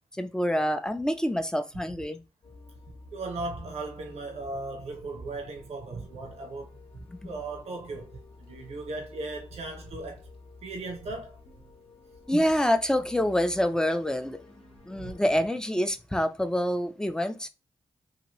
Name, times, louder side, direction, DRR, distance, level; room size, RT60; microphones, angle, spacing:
voice 1, 0.1-2.2 7.2-7.3 12.3-14.4 14.9-17.5, equal, 5° left, 0.5 m, -26 dB
sound 1, 2.4-15.5, left 3 dB, 65° left, 0.9 m, -51 dB
voice 2, 3.1-10.3 10.6-11.4 15.0-15.1, right 3 dB, 80° right, 0.8 m, -37 dB
2.9 x 2.5 x 3.0 m
cardioid pair, 55°, 11 cm